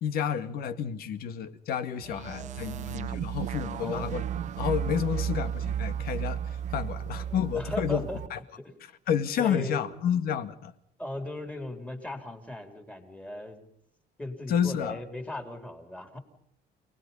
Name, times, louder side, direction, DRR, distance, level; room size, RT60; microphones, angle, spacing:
voice 1, 0.0-4.3 4.6-6.4 6.7-8.4 9.1-10.7 14.5-15.0, left 8 dB, 60° left, 2.0 m, -30 dB
voice 2, 2.0-2.9 3.7-4.3 5.9-6.3 6.9-8.2 8.6-8.7 9.4-10.0 11.0-13.7 14.2-16.2, left 1 dB, 5° left, 3.5 m, -39 dB
sound 1, 2.0-8.3, right 9 dB, 40° right, 0.8 m, -33 dB
30.0 x 20.0 x 5.5 m
cardioid pair, 175°, 18 cm